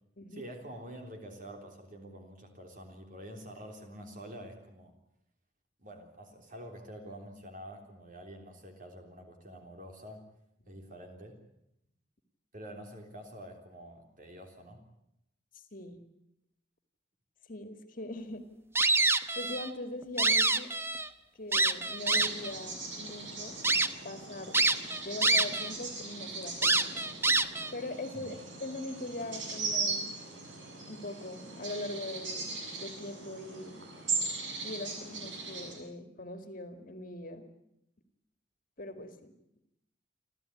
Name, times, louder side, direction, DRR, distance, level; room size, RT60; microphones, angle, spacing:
voice 1, 0.3-4.9 5.8-10.2 10.7-11.4 12.5-14.8 28.1-28.3, equal, 45° right, 3 dB, 3.6 m, -47 dB
voice 2, 17.5-18.4 19.4-20.7 21.4-23.6 24.0-24.6 25.0-27.0 27.7-30.2 30.9-33.8 34.6-37.4 38.8-39.3, left 2 dB, 45° left, 8 dB, 2.2 m, -41 dB
sound 1, 18.8-19.7 20.0-21.1 21.5-22.5 23.1-23.2 23.6-23.9 24.5-25.7 26.0-26.1 26.6-27.7, right 2 dB, 15° right, 0.9 m, -26 dB
sound 2, 22.0-35.7, right 4 dB, 70° right, 7.5 m, -39 dB
28.5 x 13.5 x 10.0 m, 0.82 s
head